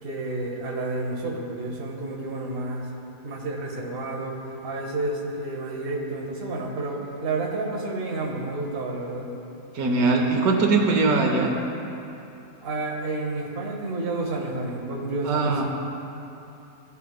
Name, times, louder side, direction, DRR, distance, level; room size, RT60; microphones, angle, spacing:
voice 1, 0.0-2.9 3.2-9.3 10.0-10.2 12.6-15.6, right 2 dB, 45° right, -1 dB, 1.2 m, -30 dB
voice 2, 9.7-11.5 15.3-15.6, right 3 dB, 80° right, 2 dB, 1.3 m, -21 dB
15.0 x 6.9 x 2.3 m, 2.9 s
omnidirectional pair, 1.6 m